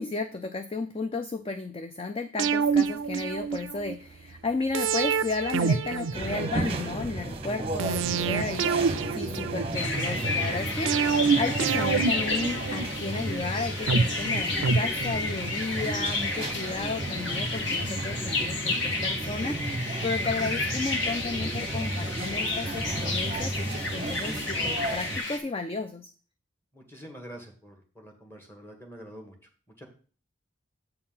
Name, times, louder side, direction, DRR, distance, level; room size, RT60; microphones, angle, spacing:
voice 1, 0.0-26.1, left 3 dB, 25° left, 8 dB, 0.4 m, -33 dB
sound 1, 2.4-4.0 4.7-6.9 7.8-10.0 10.9-13.2 13.9-15.5 15.8-15.9, right 5 dB, 65° right, 0.4 m, -27 dB
sound 2, 6.1-25.2, right 1 dB, 30° right, 0.8 m, -33 dB
sound 3, 9.8-25.4, left 3 dB, 60° left, 1.4 m, -31 dB
voice 2, 26.7-29.3 29.8-29.9, equal, 10° left, 2 dB, 1.6 m, -46 dB
7.7 x 4.3 x 5.6 m, 0.39 s
head